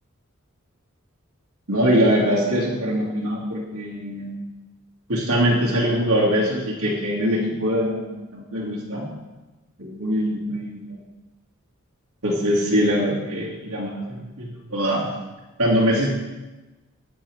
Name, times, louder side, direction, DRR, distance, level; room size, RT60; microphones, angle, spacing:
voice 1, 1.7-4.4 5.1-8.1 8.3-9.1 9.8-11.0 12.2-15.1 15.6-16.1, equal, 85° right, -7 dB, 2.6 m, -22 dB
12.5 x 9.5 x 3.7 m, 1.1 s
head